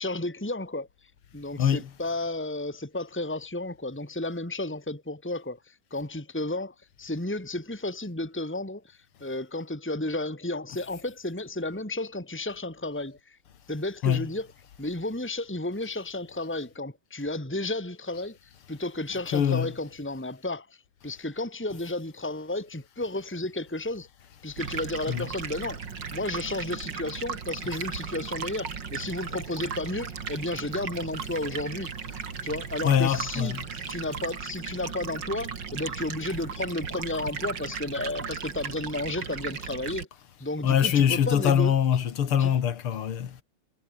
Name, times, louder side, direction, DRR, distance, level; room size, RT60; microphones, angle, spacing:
voice 1, 0.0-13.4 13.7-14.5 14.8-24.1 24.4-25.8 26.1-31.9 32.4-33.5 33.9-40.1 40.4-41.7 42.4-42.5, left 2 dB, 5° left, 2.8 m, -33 dB
voice 2, 1.6-1.9 14.0-14.3 19.3-19.7 25.1-25.3 32.8-33.6 40.6-43.4, left 9 dB, 90° left, 2.5 m, -23 dB
Stream, 24.6-40.0, right 6 dB, 55° right, 2.8 m, -36 dB
omnidirectional pair, 2.3 m